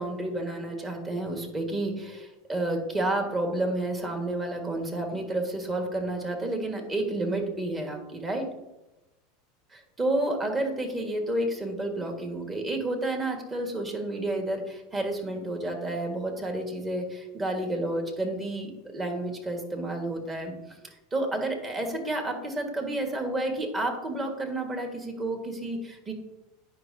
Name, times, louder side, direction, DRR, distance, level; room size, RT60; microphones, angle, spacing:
voice 1, 0.0-8.5 9.7-26.1, right 1 dB, 25° right, 3 dB, 1.6 m, -30 dB
9.6 x 5.3 x 2.7 m, 0.99 s
hypercardioid pair, 100°, 0 cm